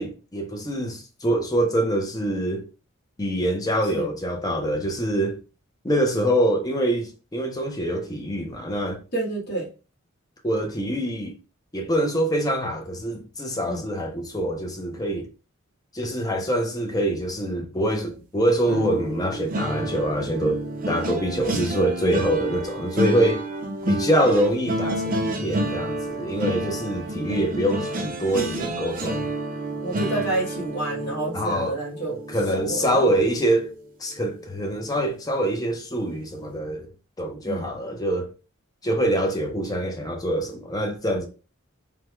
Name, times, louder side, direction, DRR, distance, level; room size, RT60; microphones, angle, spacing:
voice 1, 0.0-2.6 3.2-5.4 5.8-9.0 10.4-11.4 11.7-15.3 15.9-20.6 20.9-23.4 23.9-29.3 31.3-31.8 32.3-33.7 34.0-36.9 37.2-38.3 38.8-41.3, right 1 dB, 20° left, 0.6 m, -25 dB
voice 2, 9.1-9.7 13.7-13.8 21.4-21.6 29.8-32.2 32.5-33.1 37.4-37.7, right 2 dB, 50° left, 1.4 m, -29 dB
sound 1, 18.7-33.8 34.2-34.5 34.8-35.0, right 1 dB, 40° right, 0.5 m, -30 dB
3.4 x 2.2 x 3.0 m
head